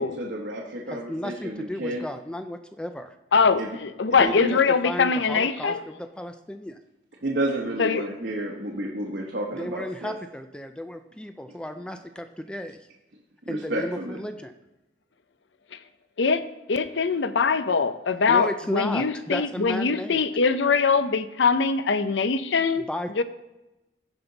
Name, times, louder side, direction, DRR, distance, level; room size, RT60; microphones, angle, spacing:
voice 1, 0.0-2.0 3.6-3.8 4.2-4.6 7.2-10.1 13.5-14.2, right 1 dB, 60° right, -2 dB, 1.2 m, -31 dB
voice 2, 0.9-3.2 4.2-4.6 4.8-6.8 9.6-12.8 13.5-14.5 18.3-20.2 22.9-23.2, left 1 dB, 5° left, 7 dB, 0.4 m, -34 dB
voice 3, 3.3-5.8 7.8-8.0 15.7-15.8 16.2-16.4 16.7-22.8 23.2-23.3, left 5 dB, 70° left, 12 dB, 0.6 m, -22 dB
16.0 x 5.3 x 4.0 m, 1.0 s
head